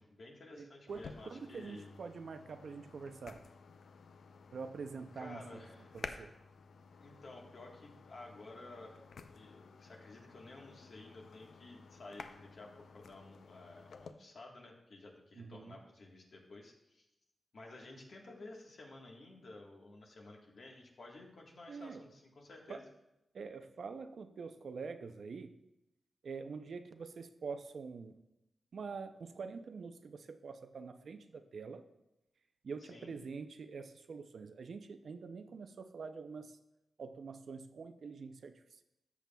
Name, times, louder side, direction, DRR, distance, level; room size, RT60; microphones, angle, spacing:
voice 1, 0.0-2.0 5.2-5.9 7.0-9.0 9.3-17.1 17.5-22.8 32.9-33.1, left 2 dB, 60° left, 0 dB, 1.4 m, -53 dB
voice 2, 0.6-3.5 4.5-5.6 5.9-6.4 15.3-15.8 21.7-22.0 22.7-22.8 23.3-25.6 26.2-28.2 28.7-31.8 32.6-36.6 37.0-38.8, right 5 dB, 65° right, 9 dB, 0.5 m, -45 dB
sound 1, 0.9-14.1, left 5 dB, 80° left, 0.4 m, -53 dB
13.5 x 7.0 x 2.3 m, 0.90 s
wide cardioid pair, 155°, 0 cm